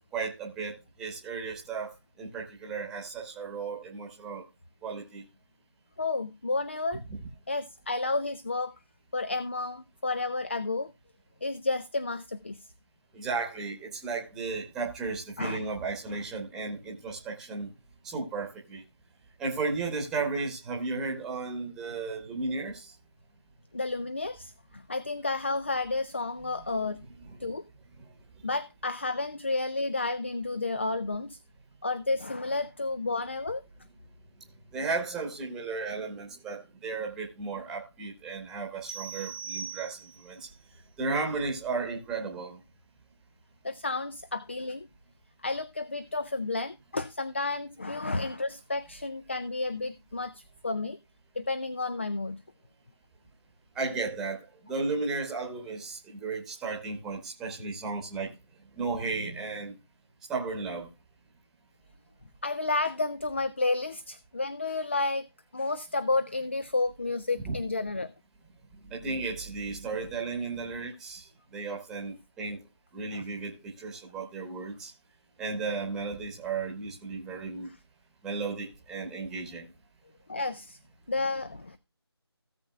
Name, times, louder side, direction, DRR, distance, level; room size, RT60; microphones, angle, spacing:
voice 1, 0.0-4.4 4.8-5.2 13.1-17.7 18.0-18.8 19.4-22.9 34.7-40.5 41.0-42.6 53.7-58.3 58.8-59.7 60.3-60.9 67.4-67.6 68.9-72.6 72.9-74.9 75.4-77.7 78.2-79.6, right 4 dB, 5° right, 1.1 m, -34 dB
voice 2, 6.0-7.0 7.5-8.7 9.1-10.9 11.4-12.7 15.4-15.6 23.7-27.0 27.4-27.6 28.4-31.4 31.8-33.6 43.6-44.9 45.4-51.0 51.4-52.4 62.4-65.3 65.5-68.1 73.1-73.2 80.3-80.8 81.1-81.8, left 3 dB, 25° left, 0.4 m, -31 dB
sound 1, 38.9-40.4, right 6 dB, 85° left, 4.2 m, -40 dB
17.0 x 7.1 x 2.3 m
figure-of-eight pair, 170°, 14 cm